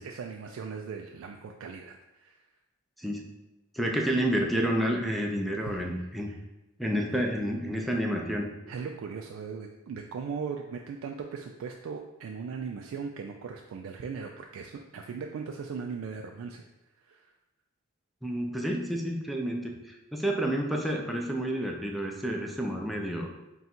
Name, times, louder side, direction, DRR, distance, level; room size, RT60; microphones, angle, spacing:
voice 1, 0.0-2.5 5.6-6.4 7.1-7.2 8.7-16.6 17.0-17.3, right 5 dB, 85° right, 2 dB, 0.3 m, -39 dB
voice 2, 3.7-6.3 6.8-8.5 18.2-23.3, equal, ahead, 0 dB, 0.4 m, -29 dB
3.8 x 2.3 x 4.2 m, 0.98 s
head